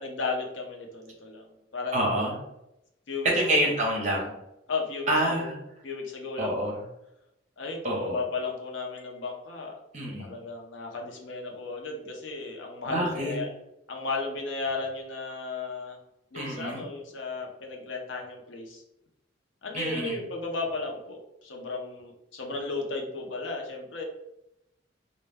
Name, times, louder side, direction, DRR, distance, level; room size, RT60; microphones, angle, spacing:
voice 1, 0.0-2.4 3.1-3.3 3.6-3.8 4.7-5.5 5.8-6.6 7.6-9.7 10.2-13.5 13.9-16.0 16.3-18.8 19.6-24.0, left 3 dB, 85° left, 1 dB, 0.6 m, -34 dB
voice 2, 1.9-2.3 3.2-4.3 5.1-5.5 6.4-6.7 7.8-8.2 9.9-10.3 12.9-13.3 16.3-16.8 19.7-20.2, right 1 dB, 40° right, -1 dB, 0.7 m, -27 dB
2.1 x 2.1 x 3.3 m, 0.84 s
head